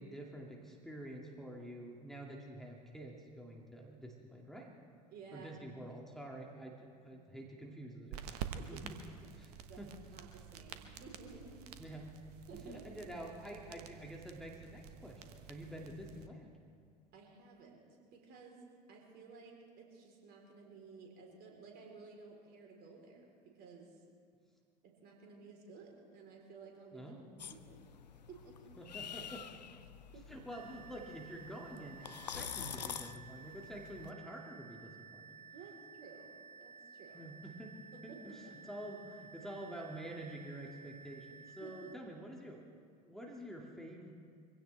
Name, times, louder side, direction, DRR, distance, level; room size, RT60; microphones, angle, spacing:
voice 1, 0.0-4.7 5.3-8.9 9.3-9.9 11.8-12.1 12.5-16.5 26.9-27.4 28.8-29.4 30.3-35.4 37.1-37.8 38.0-42.6 43.0-44.1, right 1 dB, ahead, -2 dB, 2.4 m, -48 dB
voice 2, 5.1-5.6 7.1-7.2 8.5-8.9 9.7-9.8 10.1-11.6 12.5-12.9 17.1-18.6 18.9-24.0 25.0-27.1 27.5-27.8 28.3-28.7 30.1-30.3 35.5-36.3 36.6-37.2 37.9-38.2 41.6-41.8, right 4 dB, 50° right, 0 dB, 3.9 m, -54 dB
sound 1, 8.1-16.3, right 8 dB, 65° right, 1.2 m, -49 dB
sound 2, 27.4-34.1, left 8 dB, 85° left, 0.6 m, -47 dB
sound 3, 30.5-41.9, right 5 dB, 85° right, 0.6 m, -55 dB
24.5 x 16.5 x 3.4 m, 2.2 s
figure-of-eight pair, 70°, 21 cm